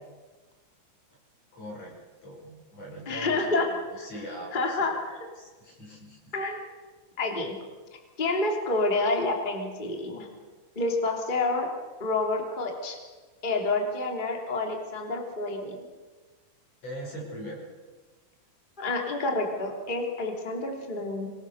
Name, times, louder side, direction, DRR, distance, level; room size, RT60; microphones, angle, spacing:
voice 1, 1.5-1.9 2.2-5.1 5.4-6.3 16.8-17.7, equal, 30° left, -1 dB, 6.0 m, -41 dB
voice 2, 3.1-3.7 3.9-4.1 4.5-5.2 6.3-6.6 7.2-7.6 8.2-10.3 10.7-11.7 12.0-13.0 13.4-15.8 18.8-21.3, left 2 dB, 15° left, 2 dB, 2.2 m, -28 dB
25.5 x 21.0 x 6.7 m, 1.3 s
omnidirectional pair, 6.0 m